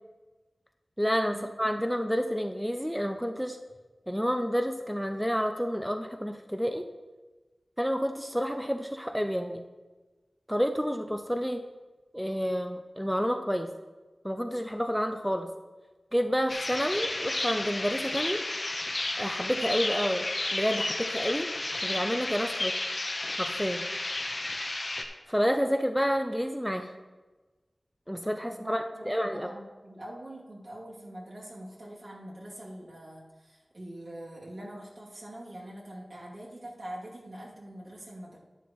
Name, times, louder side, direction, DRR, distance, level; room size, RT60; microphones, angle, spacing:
voice 1, 1.0-3.6 4.1-6.8 7.8-9.6 10.5-11.6 12.1-13.7 14.2-15.5 16.1-18.4 19.2-21.5 21.8-22.8 23.4-23.9 25.3-26.9 28.1-29.5, equal, ahead, 6 dB, 0.6 m, -29 dB
sound 1, 16.5-25.0, left 2 dB, 55° left, 0.9 m, -32 dB
voice 2, 28.6-38.4, right 1 dB, 65° right, -5 dB, 2.7 m, -44 dB
11.0 x 10.5 x 3.1 m, 1.2 s
wide cardioid pair, 70°, 0 cm